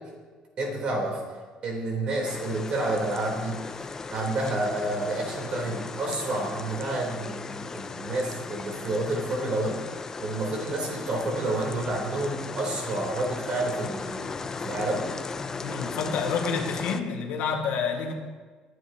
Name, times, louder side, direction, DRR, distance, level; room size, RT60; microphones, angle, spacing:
voice 1, 0.6-1.2 1.6-3.6 4.1-15.0, right 2 dB, 40° right, 0 dB, 3.5 m, -29 dB
sound 1, 2.2-17.0, left 4 dB, 20° left, 0.5 m, -36 dB
voice 2, 15.6-18.1, left 5 dB, 75° left, 2 dB, 1.7 m, -28 dB
21.0 x 9.9 x 2.9 m, 1.4 s
cardioid pair, 150°, 3 cm